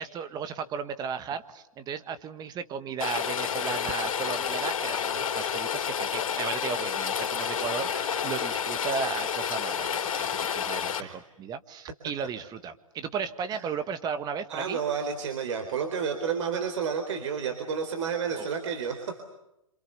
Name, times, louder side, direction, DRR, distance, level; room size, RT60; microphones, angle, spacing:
voice 1, 0.0-9.9 10.2-14.8 18.3-18.5, right 6 dB, 20° right, 10 dB, 1.7 m, -35 dB
Rain, 3.0-11.0, left 7 dB, 70° left, 3.5 m, -30 dB
voice 2, 14.5-19.2, right 6 dB, 55° right, 5 dB, 4.1 m, -31 dB
27.5 x 27.0 x 6.9 m, 0.88 s
figure-of-eight pair, 120°, 18 cm